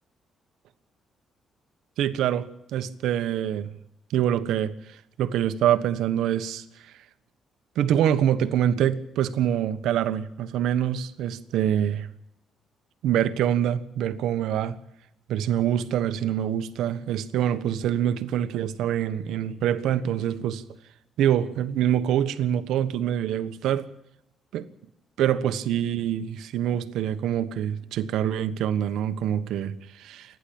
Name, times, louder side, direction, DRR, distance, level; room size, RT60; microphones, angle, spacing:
voice 1, 2.0-3.7 4.1-4.7 5.2-6.6 7.8-12.1 13.0-14.8 15.3-20.6 21.2-23.9 24.5-24.7 25.2-30.4, right 10 dB, 85° right, 1.3 m, -25 dB
28.0 x 11.0 x 8.8 m
cardioid pair, 90°, 0 cm